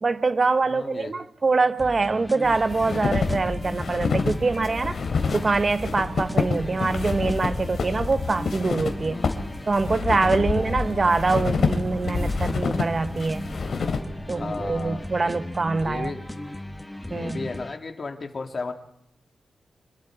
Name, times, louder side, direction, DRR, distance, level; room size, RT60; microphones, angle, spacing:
voice 1, 0.0-5.0 5.3-9.2 9.7-13.5 14.3-16.1 17.1-17.4, right 3 dB, 35° right, 0.9 m, -24 dB
voice 2, 0.6-1.1 9.1-9.5 10.5-10.8 14.3-15.4 15.8-16.2 17.1-18.7, left 3 dB, 45° left, 2.4 m, -35 dB
sound 1, 1.8-17.8, left 1 dB, 10° left, 1.3 m, -37 dB
sound 2, 2.4-14.0, left 4 dB, 60° left, 2.7 m, -28 dB
sound 3, 4.8-15.1, right 1 dB, 10° right, 1.4 m, -43 dB
26.0 x 21.5 x 4.8 m
wide cardioid pair, 115°, 0 cm